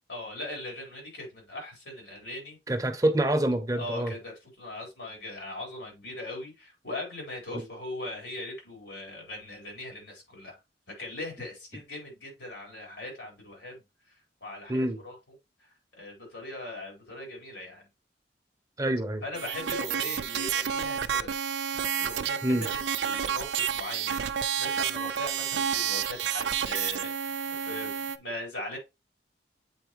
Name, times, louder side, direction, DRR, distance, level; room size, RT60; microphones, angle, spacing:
voice 1, 0.1-2.6 3.8-10.6 10.9-13.8 14.4-15.2 15.6-15.7 16.0-17.9 19.2-21.3 22.0-22.7 23.0-24.3 24.6-28.8, left 2 dB, 85° left, 4.3 m, -40 dB
voice 2, 2.7-4.1 7.5-7.7 14.7-15.0 18.8-19.2 22.4-22.7, right 1 dB, 20° right, 0.8 m, -26 dB
sound 1, 19.3-28.2, right 8 dB, 85° right, 0.5 m, -30 dB
7.9 x 4.5 x 3.0 m
head